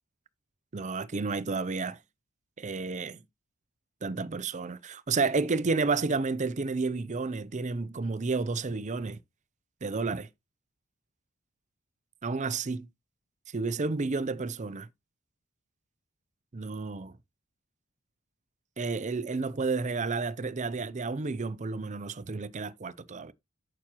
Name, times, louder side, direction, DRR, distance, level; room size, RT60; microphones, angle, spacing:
voice 1, 0.7-2.0 2.6-3.2 4.0-9.2 9.8-10.3 12.2-12.9 13.5-14.9 16.5-17.2 18.8-23.3, right 4 dB, 35° right, 0.5 m, -31 dB
9.2 x 7.1 x 3.0 m
head